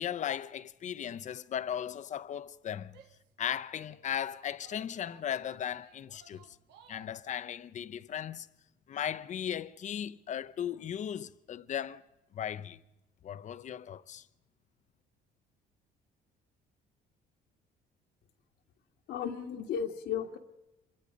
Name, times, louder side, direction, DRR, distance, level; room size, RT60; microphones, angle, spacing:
voice 1, 0.0-3.0 3.4-6.5 6.9-8.5 8.9-12.0 12.3-12.8 13.2-14.2, left 9 dB, 45° left, 0.7 m, -37 dB
Female speech woman speaking / Yell, 2.9-4.1 4.6-7.2, right 8 dB, 85° right, 1.6 m, -60 dB
voice 2, 19.1-20.4, left 8 dB, 75° left, 1.6 m, -34 dB
26.5 x 22.5 x 5.2 m
cardioid pair, 110°, 17 cm